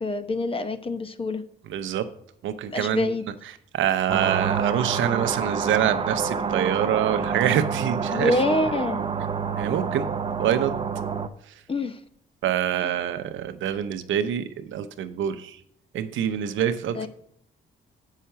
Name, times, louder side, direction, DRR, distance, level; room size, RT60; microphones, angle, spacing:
voice 1, 0.0-1.4 2.7-3.2 8.1-9.0 11.7-12.0 16.9-17.1, left 2 dB, 25° left, 10 dB, 0.8 m, -26 dB
voice 2, 1.7-2.1 2.4-3.1 3.4-8.4 9.6-10.1 10.4-10.7 11.4-11.6 12.4-15.6 15.9-17.1, right 10 dB, 75° right, 10 dB, 0.8 m, -26 dB
sound 1, 4.1-11.3, right 5 dB, 25° right, 0.6 m, -28 dB
7.4 x 5.7 x 5.6 m, 0.69 s
cardioid pair, 90°, 20 cm